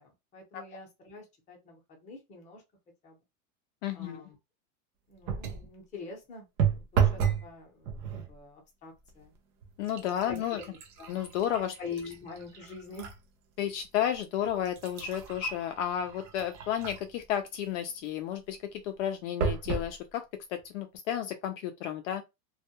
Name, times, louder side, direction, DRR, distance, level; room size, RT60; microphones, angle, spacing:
voice 1, 0.0-2.6 3.0-3.2 3.9-4.4 5.1-8.0 8.3-9.3 10.2-11.1 11.8-13.1, left 4 dB, 15° left, 0.7 m, -45 dB
voice 2, 3.8-4.2 9.8-10.6 11.1-11.7 13.6-20.2 20.5-22.2, left 10 dB, 60° left, 0.5 m, -32 dB
sound 1, 5.2-5.7 6.6-7.5 7.8-8.3 9.1-9.2 9.6-13.2 13.7-13.8 14.5-17.2 19.4-19.9 20.6-20.7 20.9-21.0, right 7 dB, 40° right, 0.6 m, -32 dB
2.3 x 2.1 x 2.8 m
supercardioid pair, 150°, 42 cm